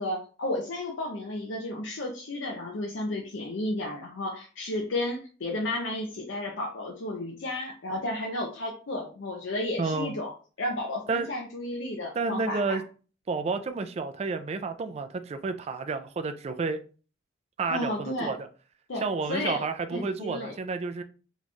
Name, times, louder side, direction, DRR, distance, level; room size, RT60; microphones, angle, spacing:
voice 1, 0.0-10.3 10.6-12.8 17.7-18.4 18.9-19.0 19.3-19.6 19.9-20.6, left 1 dB, 75° left, 0.6 m, -32 dB
voice 2, 9.8-10.1 11.1-11.3 12.2-12.8 13.3-16.8 17.6-18.4 19.0-21.0, right 4 dB, 35° right, 0.3 m, -30 dB
3.0 x 2.3 x 4.1 m
head